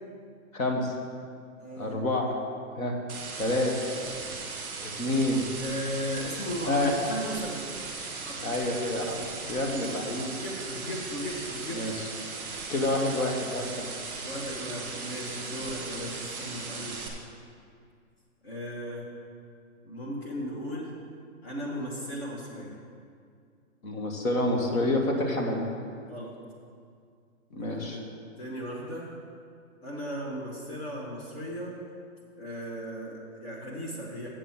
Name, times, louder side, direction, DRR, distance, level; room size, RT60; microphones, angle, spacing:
voice 1, 0.5-1.0 1.8-2.3 2.8-2.9 3.4-3.7 4.8-5.4 6.7-6.9 8.4-9.2 9.5-10.3 11.7-12.1 12.7-13.9 23.8-25.6 27.5-28.0, left 1 dB, 70° left, 1 dB, 1.8 m, -28 dB
voice 2, 1.6-2.2 5.6-7.6 8.2-8.5 8.9-9.3 10.3-11.9 14.2-17.0 18.4-19.1 19.8-20.9 21.4-22.7 26.1-26.4 27.6-29.1 29.8-31.8 32.4-34.3, equal, 45° left, -3 dB, 1.6 m, -36 dB
sound 1, 3.1-17.1, right 4 dB, 5° right, 0.5 m, -38 dB
7.4 x 5.9 x 7.3 m, 2.2 s
hypercardioid pair, 170°, 42 cm